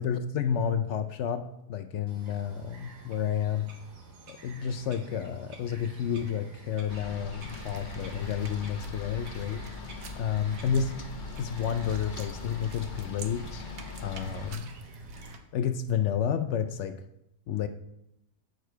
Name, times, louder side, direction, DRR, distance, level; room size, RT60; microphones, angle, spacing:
voice 1, 0.0-3.7 4.3-9.6 10.2-10.9 11.4-13.8 14.0-14.7 15.5-16.9 17.5-17.7, left 8 dB, 70° left, 9 dB, 0.6 m, -30 dB
Bird vocalization bird call bird song, 2.1-15.3, right 2 dB, 85° right, 1.9 m, -51 dB
sound 1, 6.9-14.6, left 4 dB, 35° left, 0.9 m, -41 dB
sound 2, 7.4-15.4, right 4 dB, 70° right, 1.3 m, -48 dB
9.2 x 6.6 x 4.5 m, 0.83 s
omnidirectional pair, 1.7 m